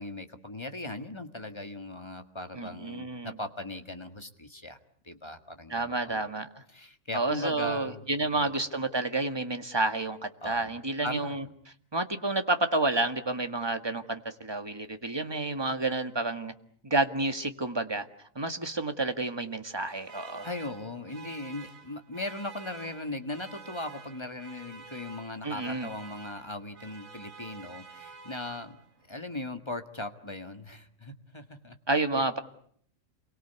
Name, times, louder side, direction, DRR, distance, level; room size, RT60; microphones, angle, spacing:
voice 1, 0.0-4.8 5.0-6.3 6.7-8.5 10.4-10.7 11.0-11.4 20.4-28.8 29.1-31.8, left 2 dB, 20° left, 7 dB, 1.8 m, -39 dB
voice 2, 2.5-3.3 5.7-6.6 7.1-11.4 11.9-16.5 16.8-18.1 18.4-20.5 25.4-25.9 31.9-32.4, right 2 dB, 20° right, 7 dB, 1.8 m, -30 dB
Alarm, 19.6-29.1, right 5 dB, 80° right, 3.2 m, -49 dB
28.5 x 23.5 x 8.2 m, 0.63 s
omnidirectional pair, 1.4 m